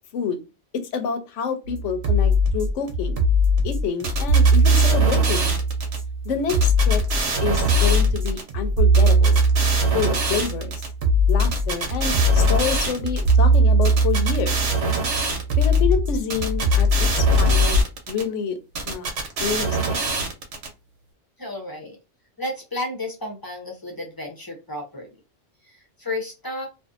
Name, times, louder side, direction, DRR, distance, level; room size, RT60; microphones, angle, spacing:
voice 1, 0.7-3.2 3.6-5.5 6.2-7.0 7.4-9.4 9.9-10.7 11.3-14.6 15.6-18.6 18.9-19.1 19.4-20.1, left 6 dB, 80° left, 8 dB, 1.0 m, -28 dB
sound 1, 1.7-17.8, equal, 60° right, 0.8 m, -20 dB
sound 2, 4.0-6.0 6.5-8.4 8.9-10.9 11.4-13.3 13.8-15.8 16.3-18.2 18.7-20.7, right 4 dB, 80° right, 1.0 m, -26 dB
voice 2, 21.4-22.0 22.4-25.1 25.7-26.7, left 2 dB, 25° left, 1 dB, 0.6 m, -32 dB
2.6 x 2.3 x 2.4 m, 0.28 s
omnidirectional pair, 1.2 m